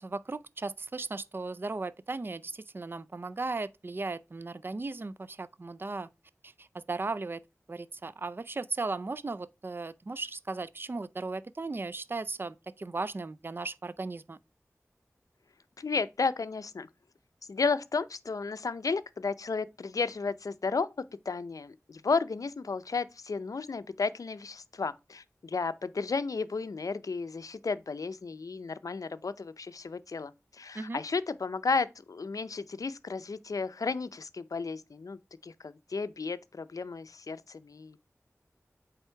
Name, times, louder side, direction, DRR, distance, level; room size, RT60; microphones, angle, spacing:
voice 1, 0.0-6.1 6.4-7.4 7.7-14.4 30.7-31.0, right 3 dB, 40° right, 0.4 m, -36 dB
voice 2, 15.8-16.9 17.5-20.9 21.3-38.0, left 4 dB, 80° left, 0.5 m, -33 dB
8.1 x 3.5 x 4.4 m
wide cardioid pair, 55°, 6 cm